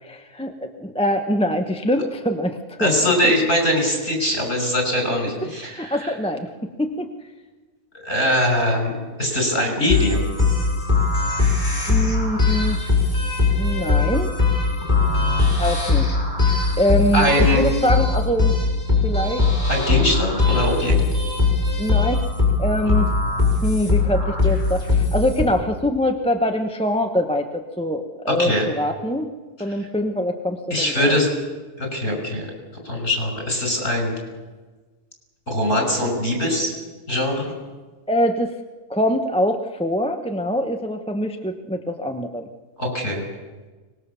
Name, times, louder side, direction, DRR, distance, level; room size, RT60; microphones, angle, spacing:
voice 1, 0.0-3.3 5.4-7.1 11.9-12.8 13.5-14.3 15.6-16.1 16.8-18.5 19.0-19.5 21.8-22.2 22.6-23.1 23.6-29.3 29.6-31.2 38.1-38.5 38.9-42.5, equal, 5° left, 5 dB, 1.0 m, -24 dB
voice 2, 2.8-6.1 7.9-10.3 17.1-17.6 19.7-21.0 22.8-22.9 28.3-28.7 29.8-29.9 30.7-31.3 31.8-32.5 32.8-34.1 35.5-36.7 37.1-37.5 42.8-43.2, left 1 dB, 50° left, 2 dB, 6.4 m, -22 dB
sound 1, 9.9-25.4, left 3 dB, 30° left, 6.1 m, -20 dB
24.0 x 20.0 x 7.1 m, 1.3 s
omnidirectional pair, 1.5 m